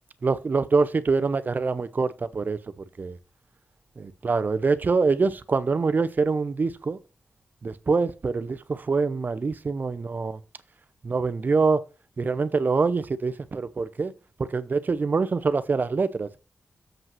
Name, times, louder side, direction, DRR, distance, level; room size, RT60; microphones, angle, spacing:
voice 1, 0.2-2.6 3.0-3.2 4.0-7.0 7.6-10.4 11.0-11.8 12.2-14.1 14.4-16.4, right 4 dB, 50° right, 0.7 m, -25 dB
7.5 x 5.4 x 5.7 m
cardioid pair, 75°, 4 cm